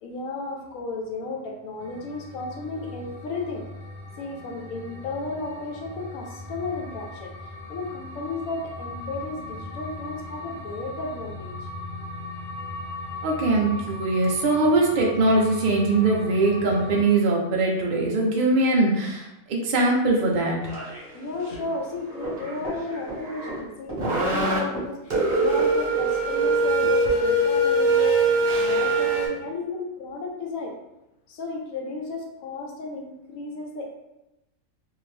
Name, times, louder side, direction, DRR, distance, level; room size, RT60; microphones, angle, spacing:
voice 1, 0.0-3.6 4.2-11.7 21.1-28.3 28.6-30.8 31.3-33.9, left 3 dB, 75° left, 1 dB, 1.0 m, -33 dB
sound 1, 1.8-17.0, left 2 dB, 45° left, 0.7 m, -38 dB
voice 2, 13.2-20.6, right 2 dB, 70° right, -1 dB, 0.4 m, -22 dB
sound 2, 20.6-21.0 21.5-21.7 22.1-23.6 24.0-24.6 25.1-29.3, right 2 dB, 40° right, 0.8 m, -23 dB
Run, 22.2-23.6 23.9-24.4 24.7-26.1 26.4-26.5 26.8-26.9, equal, 15° left, 1.0 m, -36 dB
2.7 x 2.5 x 3.2 m, 0.92 s
omnidirectional pair, 1.5 m